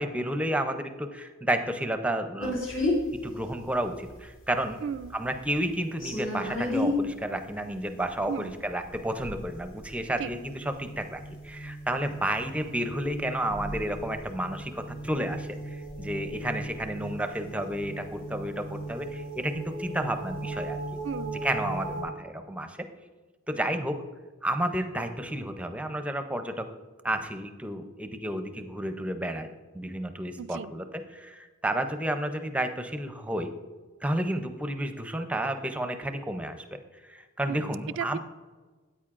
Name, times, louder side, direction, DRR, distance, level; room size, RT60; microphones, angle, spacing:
voice 1, 0.0-2.6 3.2-4.8 5.1-20.8 21.4-22.9 23.5-24.0 24.4-26.7 27.0-30.8 31.1-33.5 34.0-36.6 37.1-38.2, right 1 dB, 5° right, 7 dB, 0.5 m, -31 dB
sound 1, 2.4-22.0, left 1 dB, 75° left, 2.8 m, -35 dB
voice 2, 4.8-5.2 8.3-8.5 10.2-10.3 21.0-21.4 30.4-30.7 37.5-38.2, right 7 dB, 65° right, 16 dB, 0.3 m, -35 dB
13.0 x 9.0 x 2.5 m, 1.3 s
head